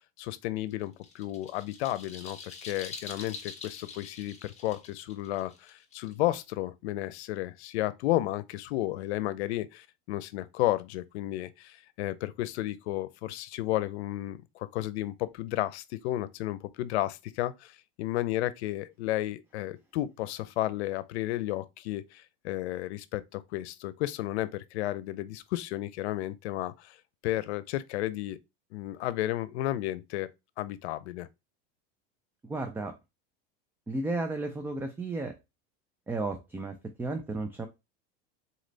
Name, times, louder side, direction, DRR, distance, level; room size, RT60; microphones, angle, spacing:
voice 1, 0.0-27.0 27.2-28.4 28.7-30.3 30.6-31.3, left 15 dB, 90° left, 0.6 m, -33 dB
sound 1, 0.7-6.5, left 5 dB, 20° left, 1.1 m, -45 dB
voice 2, 32.5-32.9 33.9-35.4 36.1-37.7, right 2 dB, 5° right, 0.3 m, -33 dB
4.1 x 3.2 x 3.9 m
supercardioid pair, 135°, 32 cm